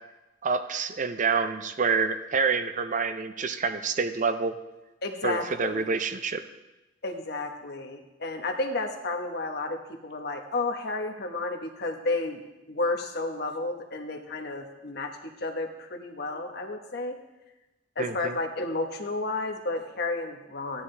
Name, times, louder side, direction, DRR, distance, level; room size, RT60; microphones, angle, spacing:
voice 1, 0.4-4.6 5.2-6.4 18.0-18.4, right 5 dB, 45° right, 10 dB, 0.5 m, -27 dB
voice 2, 5.0-5.9 7.0-12.4 12.7-17.2 18.0-20.8, left 2 dB, 60° left, 3 dB, 1.1 m, -32 dB
14.5 x 9.9 x 3.3 m, 1.0 s
head